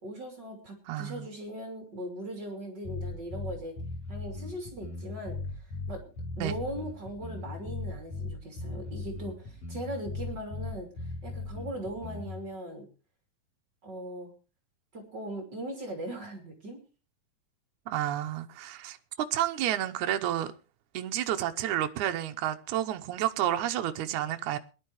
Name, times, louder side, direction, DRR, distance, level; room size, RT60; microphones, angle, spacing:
voice 1, 0.0-3.8 4.1-6.0 6.4-12.9 13.8-14.3 14.9-16.8, right 1 dB, 30° right, 3.2 m, -39 dB
voice 2, 0.9-1.3 6.4-6.5 17.9-20.5 20.9-24.6, right 12 dB, 70° right, 2.0 m, -30 dB
sound 1, 2.8-12.4, left 3 dB, 50° left, 6.2 m, -38 dB
21.5 x 11.5 x 3.1 m
omnidirectional pair, 4.1 m